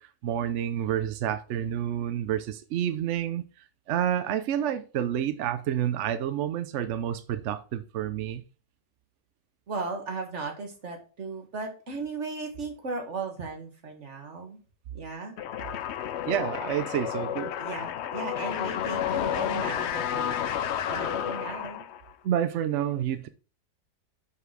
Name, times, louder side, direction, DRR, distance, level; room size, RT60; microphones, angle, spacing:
voice 1, 0.0-3.4 3.9-8.4 16.3-17.5 22.2-23.3, right 10 dB, 65° right, 0.7 m, -29 dB
voice 2, 9.7-14.6 14.9-15.4 17.6-21.8, right 3 dB, 45° right, 2.0 m, -36 dB
sound 1, 15.4-22.1, left 9 dB, 75° left, 0.6 m, -31 dB
5.9 x 5.7 x 4.7 m
omnidirectional pair, 1.7 m